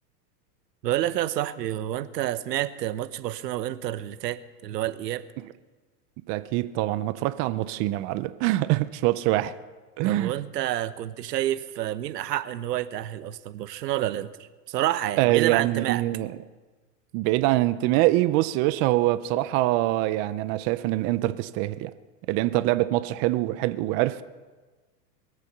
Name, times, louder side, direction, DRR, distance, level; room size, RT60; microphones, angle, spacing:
voice 1, 0.8-5.2 10.0-16.0, right 13 dB, 75° right, 14 dB, 1.1 m, -29 dB
voice 2, 6.3-9.5 10.0-10.3 15.2-16.3 17.1-21.9 22.3-24.2, right 17 dB, 30° right, 14 dB, 0.4 m, -24 dB
22.5 x 8.2 x 6.8 m, 1.3 s
hypercardioid pair, 120°, 49 cm